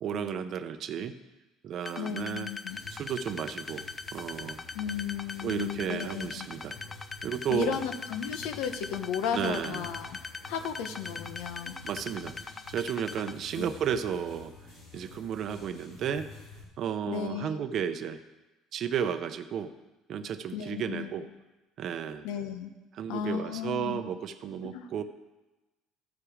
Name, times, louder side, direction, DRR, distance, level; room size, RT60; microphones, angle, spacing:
voice 1, 0.0-1.1 1.6-2.5 2.9-3.9 4.1-4.6 5.4-6.7 7.2-7.8 9.3-9.9 11.5-12.4 12.7-14.5 14.9-16.3 16.8-18.2 18.7-19.7 20.1-21.3 21.8-22.3 22.9-25.0, right 8 dB, 50° right, 10 dB, 0.6 m, -33 dB
sound 1, 1.9-13.3, left 4 dB, 25° left, 0.4 m, -41 dB
voice 2, 2.0-2.8 4.7-6.5 7.5-10.2 10.5-11.8 13.6-13.7 17.1-17.6 20.5-21.1 22.2-22.7 23.1-24.0 24.7-24.9, left 8 dB, 80° left, 8 dB, 0.9 m, -34 dB
sound 2, 2.7-16.6, left 3 dB, 65° left, 3.3 m, -50 dB
13.0 x 4.8 x 4.9 m, 1.1 s
cardioid pair, 115°, 0 cm